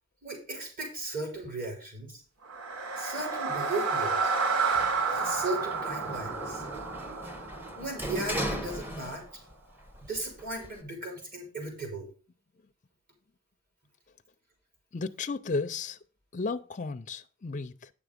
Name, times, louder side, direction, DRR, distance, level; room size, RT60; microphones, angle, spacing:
voice 1, 0.2-2.2 3.0-4.3 5.1-6.6 7.8-9.2 10.1-12.1, right 2 dB, 40° right, 4.9 m, -36 dB
sound 1, 2.4-8.6, right 4 dB, 75° right, 1.5 m, -31 dB
Sliding door, 4.7-9.5 9.9-10.8, equal, 10° right, 1.0 m, -38 dB
voice 2, 14.9-16.0 16.3-17.9, left 3 dB, 35° left, 0.5 m, -34 dB
9.9 x 6.9 x 5.1 m
head